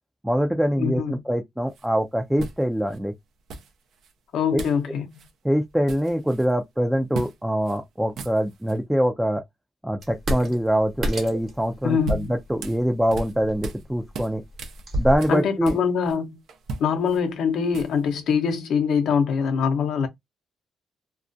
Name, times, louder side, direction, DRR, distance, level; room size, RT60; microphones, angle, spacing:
voice 1, 0.2-3.1 4.5-4.7 5.4-9.4 9.8-14.4 15.0-15.8, equal, 5° right, 0.4 m, -24 dB
voice 2, 0.8-1.1 4.3-5.1 11.8-12.3 15.3-16.4 16.8-20.1, left 6 dB, 75° left, 0.6 m, -23 dB
sound 1, 1.7-1.9 2.4-3.0 3.5-4.1 4.6-4.8 5.1-5.3 5.6-6.5 7.1-7.4 7.6-7.8 8.1-8.8 11.6-13.8 14.1-16.2 16.5-18.1, right 3 dB, 75° right, 0.5 m, -36 dB
sound 2, 10.0-15.2, equal, 50° right, 1.0 m, -32 dB
2.3 x 2.0 x 2.5 m
cardioid pair, 90°, 0 cm